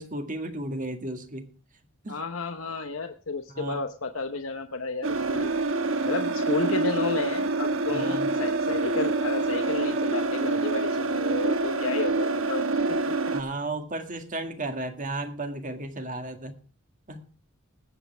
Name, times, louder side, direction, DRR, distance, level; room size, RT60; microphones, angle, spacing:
voice 1, 0.0-1.5 2.0-2.2 3.5-3.8 7.9-8.3 13.3-16.5 17.1-17.2, right 2 dB, 40° right, 6 dB, 1.9 m, -34 dB
voice 2, 2.1-5.5 6.0-13.0, left 3 dB, 70° left, 6 dB, 1.0 m, -32 dB
sound 1, 5.0-13.4, right 3 dB, 70° right, 1.1 m, -26 dB
20.5 x 8.2 x 3.3 m, 0.39 s
head